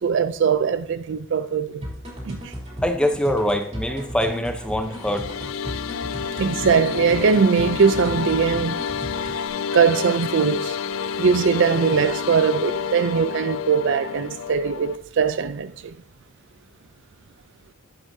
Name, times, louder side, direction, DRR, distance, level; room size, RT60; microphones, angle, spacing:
voice 1, 0.0-1.9 2.3-2.5 6.4-8.8 9.7-10.8 11.2-15.9, right 6 dB, 55° right, 0.4 m, -21 dB
sound 1, 1.8-9.5, equal, 30° right, 3.1 m, -36 dB
voice 2, 2.8-5.3, left 1 dB, 5° left, 0.7 m, -23 dB
sound 2, 4.8-15.0, left 6 dB, 65° left, 0.3 m, -29 dB
11.0 x 7.7 x 2.7 m
head